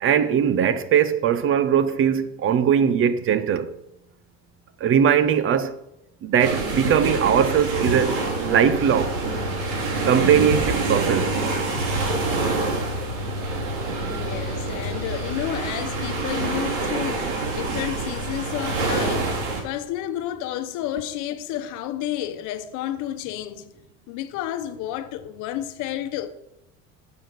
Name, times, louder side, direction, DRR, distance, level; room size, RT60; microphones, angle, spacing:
voice 1, 0.0-3.7 4.8-5.8 6.2-8.2 8.4-9.1 10.1-11.3, right 8 dB, 40° right, 0.7 m, -20 dB
sound 1, 6.4-19.6, right 2 dB, 70° right, 3.4 m, -26 dB
voice 2, 14.1-23.7 24.1-26.3, left 12 dB, 60° left, 1.0 m, -31 dB
7.2 x 6.3 x 7.9 m
supercardioid pair, 125°, 33 cm